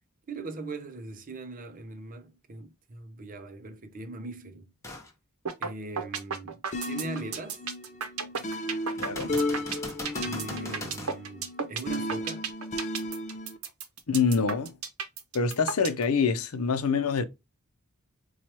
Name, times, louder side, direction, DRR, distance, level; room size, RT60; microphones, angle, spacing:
voice 1, 0.3-4.7 5.6-6.6 6.9-7.6 10.2-12.5, right 3 dB, 40° right, 0.7 m, -40 dB
sound 1, 4.8-5.1 5.7-5.8 9.0-11.2 14.9-15.0, left 2 dB, 15° left, 0.9 m, -40 dB
sound 2, 5.5-5.7 6.0-16.0, right 6 dB, 75° right, 0.8 m, -33 dB
sound 3, 6.7-13.6, left 1 dB, 35° left, 0.5 m, -34 dB
voice 2, 9.0-9.4 14.1-14.8 15.3-17.2, left 5 dB, 85° left, 0.6 m, -26 dB
4.5 x 2.3 x 2.8 m
head